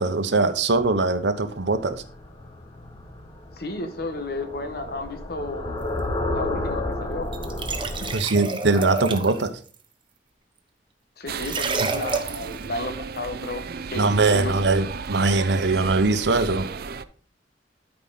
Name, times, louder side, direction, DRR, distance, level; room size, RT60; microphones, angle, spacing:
voice 1, 0.0-2.0 8.1-9.5 11.8-11.9 14.0-16.7, right 3 dB, 75° right, 10 dB, 0.9 m, -21 dB
sound 1, 0.8-8.1, left 1 dB, 25° left, 1.2 m, -32 dB
voice 2, 3.6-7.3 11.2-13.6 13.9-14.5, left 2 dB, 60° left, 7 dB, 1.2 m, -33 dB
sound 2, 7.3-9.5 11.4-12.5, right 4 dB, 30° right, 0.9 m, -29 dB
sound 3, 11.3-17.0, right 5 dB, 60° right, 0.5 m, -34 dB
12.5 x 4.9 x 4.0 m, 0.43 s
head